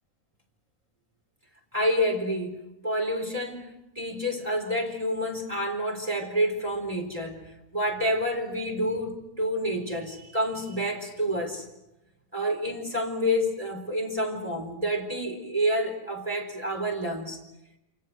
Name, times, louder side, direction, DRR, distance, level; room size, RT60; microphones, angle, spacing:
voice 1, 1.7-2.6 2.8-11.6 12.3-17.4, equal, 25° right, 1 dB, 4.3 m, -28 dB
29.0 x 27.5 x 6.3 m, 0.90 s
omnidirectional pair, 1.5 m